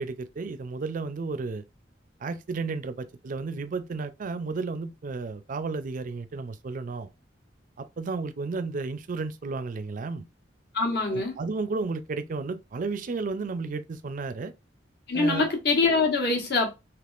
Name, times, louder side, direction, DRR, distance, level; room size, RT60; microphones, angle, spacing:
voice 1, 0.0-1.6 2.2-7.1 7.8-10.2 11.1-14.5 15.1-15.5, right 4 dB, 45° right, 0.4 m, -33 dB
voice 2, 10.7-11.4 15.1-16.8, left 3 dB, 60° left, 1.2 m, -24 dB
3.4 x 2.9 x 2.4 m
head